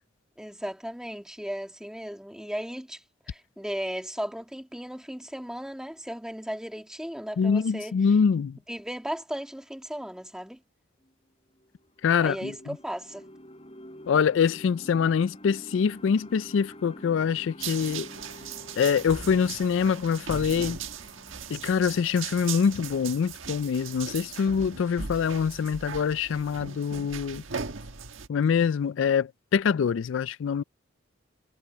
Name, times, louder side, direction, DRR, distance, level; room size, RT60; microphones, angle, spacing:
voice 1, 0.4-8.0 8.7-10.6 12.2-13.3, equal, 5° right, 1.9 m, -36 dB
voice 2, 7.4-8.6 12.0-12.5 14.1-18.1 18.8-20.8 21.5-27.4 28.3-30.6, left 6 dB, 75° left, 0.4 m, -25 dB
sound 1, 11.0-11.1 11.6-23.6, equal, 30° left, 6.9 m, -49 dB
sound 2, 17.6-28.3, right 6 dB, 85° right, 1.5 m, -38 dB
head